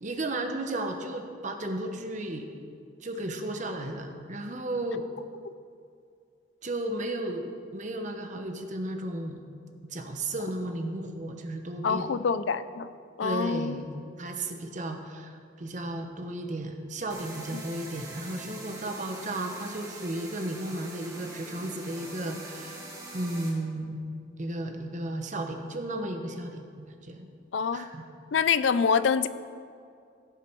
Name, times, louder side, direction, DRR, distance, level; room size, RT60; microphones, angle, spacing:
voice 1, 0.0-2.5 3.0-5.1 6.6-9.4 9.9-12.1 13.2-13.9 14.2-22.8 23.1-24.0 24.4-27.3 27.7-28.0, right 1 dB, 40° right, 4 dB, 1.0 m, -34 dB
voice 2, 11.8-12.9 13.2-13.8 17.5-17.6 27.5-27.8 28.3-29.3, left 6 dB, 75° left, 14 dB, 0.4 m, -26 dB
sound 1, 17.1-23.5, right 2 dB, 20° right, 2.0 m, -43 dB
16.0 x 7.0 x 4.6 m, 2.4 s
head